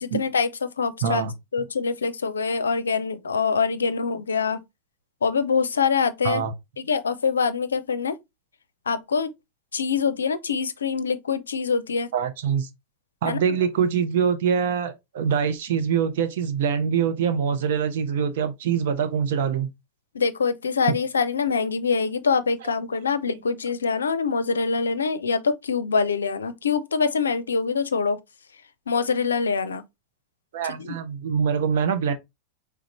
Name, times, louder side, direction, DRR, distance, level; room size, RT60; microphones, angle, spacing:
voice 1, 0.0-1.2 1.5-4.6 5.2-6.4 6.8-8.2 8.9-9.3 9.7-12.1 13.2-13.6 20.1-28.2 28.9-29.8 30.8-31.0, left 5 dB, 70° left, 0.5 m, -24 dB
voice 2, 1.0-1.3 6.2-6.5 12.1-12.7 13.2-19.7 20.9-21.0 30.5-32.2, right 7 dB, 55° right, 0.8 m, -24 dB
5.0 x 3.4 x 3.0 m
figure-of-eight pair, 90°, 0 cm